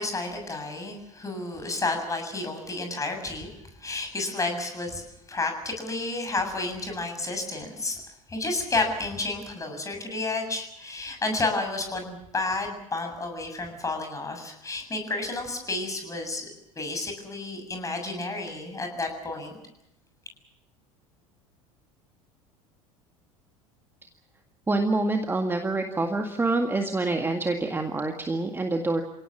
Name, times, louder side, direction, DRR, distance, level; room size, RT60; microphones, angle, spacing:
voice 1, 0.0-3.5 3.8-5.0 5.3-8.0 8.3-16.5 16.8-19.6, left 2 dB, 20° left, 5 dB, 7.3 m, -31 dB
voice 2, 24.7-29.0, right 2 dB, 10° right, 4 dB, 1.9 m, -26 dB
29.0 x 17.5 x 7.3 m, 0.82 s
figure-of-eight pair, 75°, 18 cm